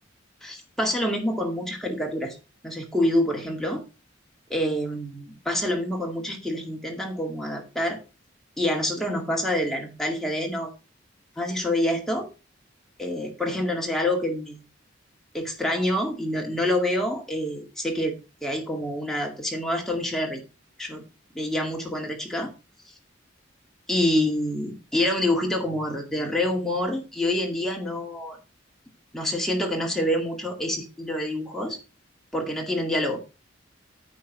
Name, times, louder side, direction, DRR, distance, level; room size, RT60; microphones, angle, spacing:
voice 1, 0.4-2.4 2.6-3.8 4.5-8.0 8.6-10.7 11.4-12.3 13.0-14.6 15.3-18.1 18.4-20.4 20.8-21.0 21.3-22.5 23.9-28.4 29.1-31.8 32.3-33.2, left 1 dB, ahead, 0 dB, 2.1 m, -27 dB
9.6 x 3.9 x 5.9 m, 0.31 s
head